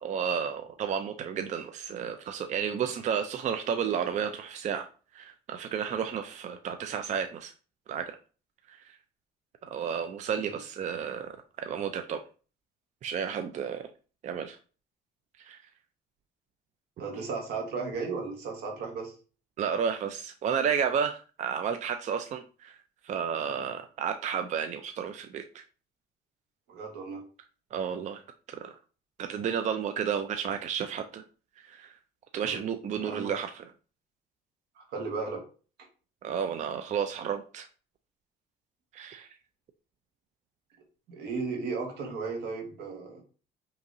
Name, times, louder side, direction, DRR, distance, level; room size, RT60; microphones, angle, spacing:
voice 1, 0.0-4.9 5.1-7.5 7.9-8.1 8.7-9.0 9.7-11.3 11.6-12.2 13.0-13.9 14.2-14.6 15.4-15.6 19.6-22.8 23.0-25.6 27.7-28.2 28.5-28.7 29.2-31.2 31.7-31.9 32.3-33.6 36.2-37.7 38.9-39.3, right 7 dB, 45° right, 6 dB, 0.4 m, -32 dB
voice 2, 17.0-19.1 26.7-27.2 32.4-32.6 33.0-33.3 34.8-35.4 41.1-43.2, right 4 dB, 85° right, 2 dB, 1.4 m, -35 dB
5.2 x 2.9 x 2.6 m, 0.37 s
cardioid pair, 110°, 17 cm